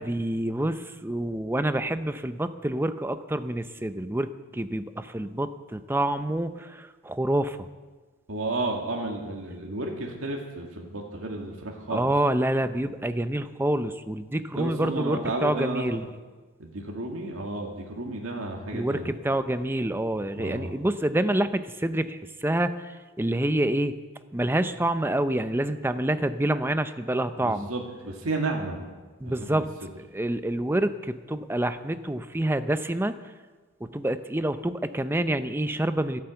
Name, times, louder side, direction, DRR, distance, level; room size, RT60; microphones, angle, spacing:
voice 1, 0.0-4.3 4.5-7.7 11.9-16.0 18.7-24.0 24.3-27.7 29.2-29.7 30.1-33.2 33.8-36.2, right 1 dB, 10° right, 11 dB, 0.6 m, -27 dB
voice 2, 8.3-12.1 14.6-16.1 16.6-19.2 20.4-20.7 27.4-28.9 29.2-29.6, right 2 dB, 70° right, 0 dB, 2.0 m, -32 dB
13.0 x 11.5 x 7.9 m, 1.3 s
head